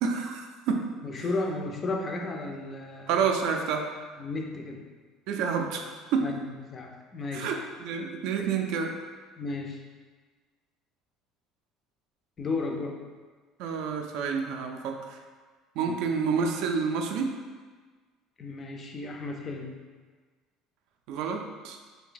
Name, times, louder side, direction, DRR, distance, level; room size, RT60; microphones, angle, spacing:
voice 1, 0.0-0.9 3.1-3.9 5.3-6.3 7.3-8.9 13.6-15.2 15.8-17.4 21.1-21.8, right 5 dB, 60° right, 4 dB, 0.3 m, -29 dB
voice 2, 1.0-3.3 4.2-4.8 6.2-7.5 8.4-8.9 9.4-9.8 12.4-13.0 15.8-16.0 18.4-19.8, left 3 dB, 20° left, 2 dB, 0.4 m, -34 dB
3.3 x 2.6 x 3.8 m, 1.4 s
cardioid pair, 175°, 0 cm